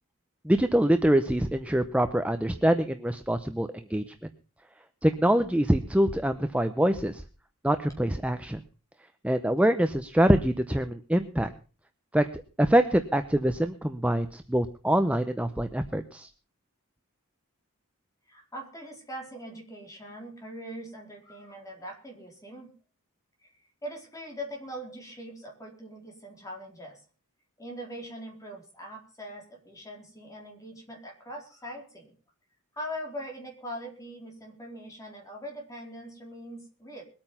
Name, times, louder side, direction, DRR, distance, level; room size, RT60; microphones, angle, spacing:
voice 1, 0.4-4.0 5.0-7.2 7.6-8.6 9.2-11.5 12.1-12.3 12.6-16.3, right 1 dB, 5° right, 8 dB, 0.7 m, -24 dB
voice 2, 18.3-22.7 23.4-23.5 23.8-27.0 27.6-32.1 32.7-37.0, equal, 15° left, 0 dB, 4.2 m, -41 dB
21.0 x 8.9 x 5.6 m, 0.38 s
head